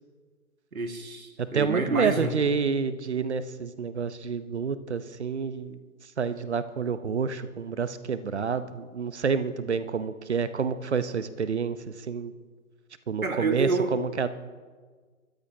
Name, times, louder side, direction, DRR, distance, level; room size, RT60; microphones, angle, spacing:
voice 1, 0.7-2.3 13.2-13.9, right 3 dB, 70° right, 4 dB, 2.1 m, -28 dB
voice 2, 1.4-5.8 6.2-12.3 13.1-14.3, right 5 dB, 50° right, 13 dB, 1.0 m, -28 dB
30.0 x 14.0 x 2.8 m, 1.5 s
figure-of-eight pair, 140°, 44 cm